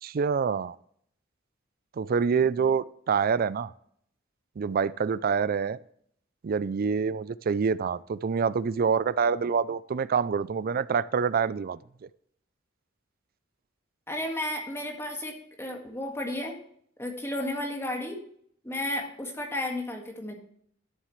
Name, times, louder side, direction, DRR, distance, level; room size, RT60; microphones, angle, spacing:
voice 1, 0.0-0.8 1.9-3.7 4.6-5.8 6.4-11.8, right 6 dB, 45° right, 0.4 m, -26 dB
voice 2, 14.1-16.6 17.0-18.2 18.6-20.4, left 1 dB, 15° left, 1.8 m, -33 dB
13.0 x 7.4 x 3.2 m
head